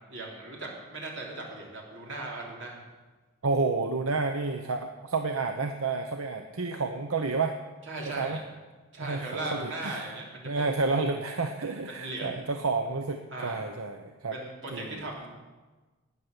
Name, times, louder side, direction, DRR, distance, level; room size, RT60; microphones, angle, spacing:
voice 1, 0.1-2.8 7.9-8.4 8.9-10.8 11.9-12.5 13.3-13.7 14.3-15.3, right 2 dB, 60° right, -2 dB, 3.6 m, -38 dB
voice 2, 3.4-7.6 8.1-8.4 9.0-10.1 10.4-14.4 14.7-15.1, right 3 dB, 85° right, 6 dB, 0.8 m, -30 dB
12.5 x 9.3 x 8.1 m, 1.3 s
head